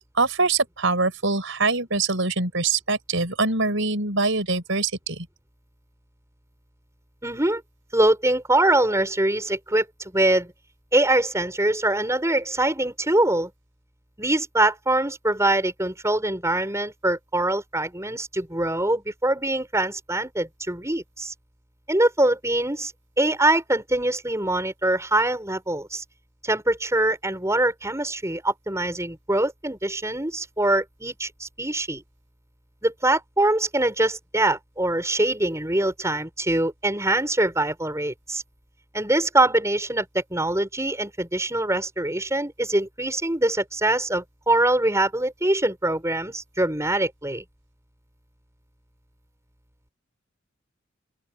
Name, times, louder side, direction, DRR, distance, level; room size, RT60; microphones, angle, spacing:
voice 1, 0.0-5.2, right 3 dB, 65° right, 5.8 m, -24 dB
voice 2, 7.2-7.6 7.9-9.9 10.1-10.5 10.9-13.5 14.2-21.3 21.9-22.9 23.2-26.0 26.4-32.0 32.8-38.4 38.9-47.4, right 1 dB, 15° right, 6.1 m, -23 dB
open air
head